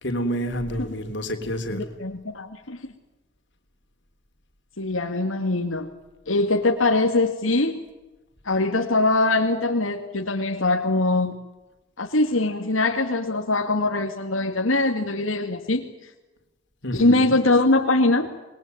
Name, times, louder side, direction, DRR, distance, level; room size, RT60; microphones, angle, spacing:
voice 1, 0.0-1.8 16.8-17.4, equal, 60° left, 6 dB, 3.7 m, -28 dB
voice 2, 1.7-2.8 4.8-5.9 6.3-7.8 8.5-11.3 12.0-15.8 16.9-18.3, left 2 dB, 85° left, 2 dB, 2.4 m, -22 dB
28.0 x 21.5 x 9.3 m, 1.1 s
head